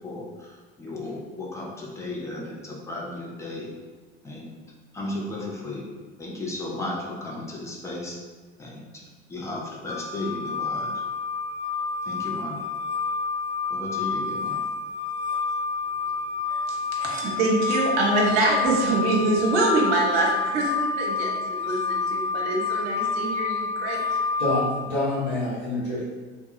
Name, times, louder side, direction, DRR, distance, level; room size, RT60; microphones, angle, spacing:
voice 1, 0.0-3.7 4.2-4.6 4.9-5.9 6.2-8.2 8.6-8.9 9.3-11.0 12.0-12.6 13.7-14.6, left 2 dB, 10° left, -3 dB, 0.7 m, -34 dB
sound 1, 9.9-24.7, left 4 dB, 60° left, 1.0 m, -28 dB
voice 2, 17.2-24.2, right 2 dB, 50° right, -2 dB, 0.8 m, -25 dB
voice 3, 24.4-26.1, left 1 dB, 75° left, -10 dB, 1.4 m, -26 dB
3.2 x 2.3 x 3.0 m, 1.4 s
figure-of-eight pair, 60°, 33 cm